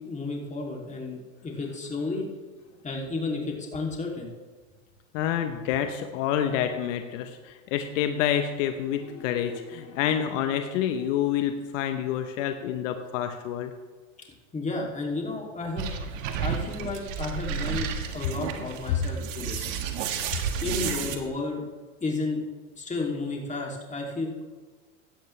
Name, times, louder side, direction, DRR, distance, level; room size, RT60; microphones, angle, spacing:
voice 1, 0.0-2.3 2.8-4.3 14.5-15.9 16.4-19.7 20.6-21.6 22.0-22.4 22.8-24.4, left 3 dB, 20° left, 0 dB, 3.0 m, -32 dB
voice 2, 5.1-13.7, left 10 dB, 70° left, 7 dB, 1.1 m, -28 dB
sound 1, 15.8-21.2, right 7 dB, 70° right, 1.8 m, -32 dB
16.5 x 12.0 x 3.4 m, 1.4 s
hypercardioid pair, 105°, 40 cm